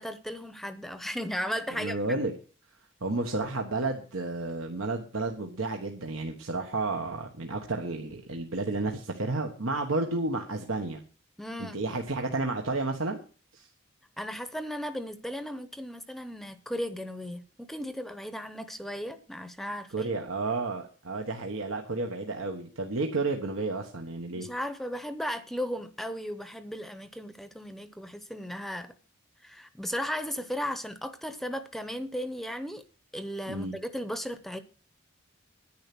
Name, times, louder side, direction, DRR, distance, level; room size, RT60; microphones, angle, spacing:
voice 1, 0.0-2.2 11.4-11.8 14.2-20.1 24.3-28.9 29.4-32.8 33.1-34.6, equal, ahead, 0.7 m, -36 dB
voice 2, 1.7-2.3 3.0-11.0 11.6-13.2 13.5-13.7 19.9-24.5 33.5-33.7, right 3 dB, 85° right, 1.4 m, -31 dB
10.5 x 9.7 x 6.1 m
head